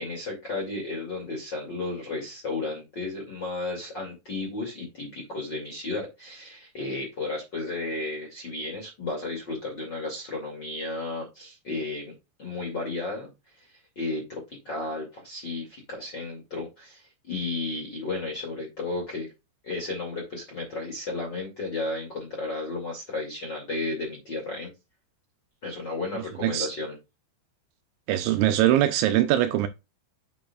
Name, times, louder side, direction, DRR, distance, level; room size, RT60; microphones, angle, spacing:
voice 1, 0.0-12.1 12.4-13.3 13.7-19.3 19.6-24.7 25.6-27.0, left 3 dB, 35° left, 1.9 m, -33 dB
voice 2, 28.1-29.7, right 13 dB, 80° right, 2.8 m, -22 dB
8.5 x 7.3 x 2.4 m
omnidirectional pair, 5.6 m